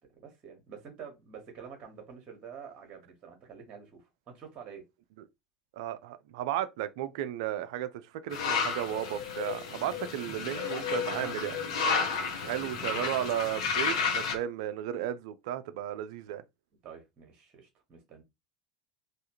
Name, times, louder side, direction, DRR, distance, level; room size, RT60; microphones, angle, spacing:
voice 1, 0.2-4.8 10.6-12.9 16.8-18.2, right 7 dB, 35° right, 1.1 m, -48 dB
voice 2, 5.8-11.6 12.5-16.4, right 12 dB, 60° right, 0.4 m, -34 dB
sound 1, 8.3-14.3, left 5 dB, 60° left, 0.9 m, -32 dB
3.4 x 2.4 x 2.8 m
figure-of-eight pair, 75°, 3 cm